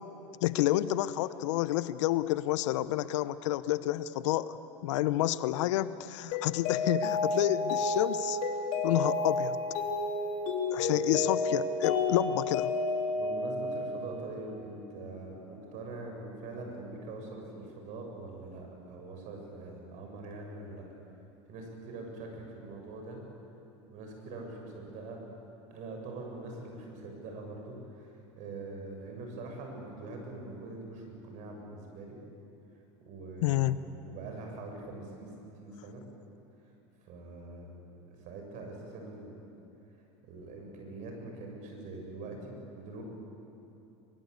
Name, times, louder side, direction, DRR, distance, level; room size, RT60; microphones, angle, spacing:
voice 1, 0.4-4.6 4.8-8.4 8.8-9.6 10.7-12.7 33.4-33.8, left 15 dB, 70° left, 15 dB, 0.9 m, -29 dB
Mallet percussion, 6.3-14.5, left 3 dB, 55° left, 3.3 m, -31 dB
voice 2, 10.8-11.2 13.1-20.9 21.5-23.2 23.9-25.2 25.7-32.2 33.1-36.0 37.0-37.7 38.1-39.4 40.3-43.0, right 2 dB, 50° right, 2 dB, 7.3 m, -43 dB
23.0 x 23.0 x 8.4 m, 2.9 s
hypercardioid pair, 105°, 16 cm